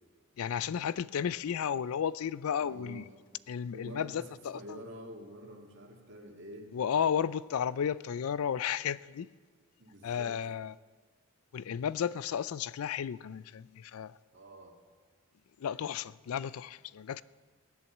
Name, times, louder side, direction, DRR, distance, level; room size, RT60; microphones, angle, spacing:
voice 1, 0.4-3.0 3.5-4.8 6.7-9.3 10.0-10.8 11.5-14.1 15.6-17.2, left 8 dB, 75° left, 0.4 m, -33 dB
voice 2, 2.6-3.1 3.7-6.7 9.8-10.3 14.3-14.7, equal, 55° right, 2.2 m, -47 dB
16.5 x 11.0 x 7.2 m
head